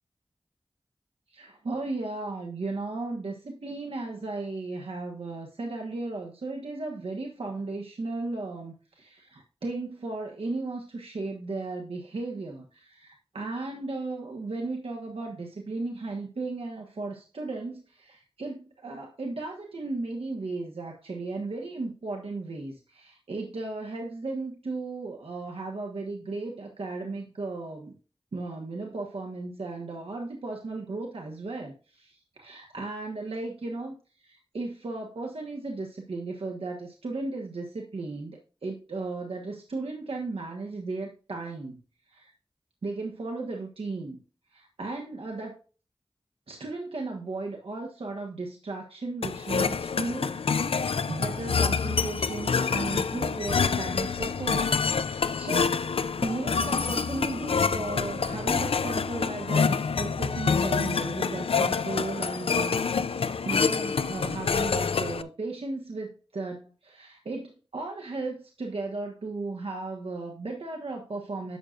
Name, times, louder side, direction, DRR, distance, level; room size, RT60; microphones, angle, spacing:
voice 1, 1.3-27.9 28.3-41.8 42.1-42.3 42.8-44.2 44.5-45.6 46.5-55.8 56.2-71.6, right 3 dB, 90° right, 0 dB, 1.3 m, -35 dB
sound 1, 49.2-65.2, left 5 dB, 80° left, 0.4 m, -27 dB
11.0 x 6.5 x 2.5 m, 0.35 s
wide cardioid pair, 55°, 10 cm